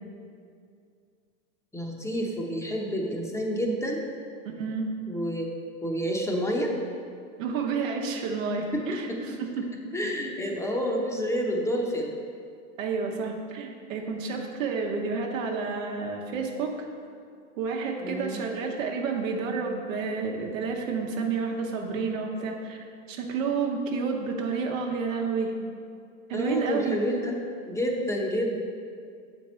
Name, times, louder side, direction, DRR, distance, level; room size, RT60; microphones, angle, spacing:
voice 1, 1.7-4.0 5.1-5.5 5.8-6.8 8.7-9.2 9.9-12.1 18.0-18.4 26.3-28.6, equal, 5° left, 0 dB, 0.7 m, -29 dB
voice 2, 4.6-4.9 7.4-9.7 10.0-10.2 12.8-16.7 17.6-22.8 23.1-25.5 26.3-27.0, right 5 dB, 80° right, 1 dB, 1.0 m, -30 dB
6.8 x 4.5 x 4.3 m, 2.3 s
supercardioid pair, 115°, 39 cm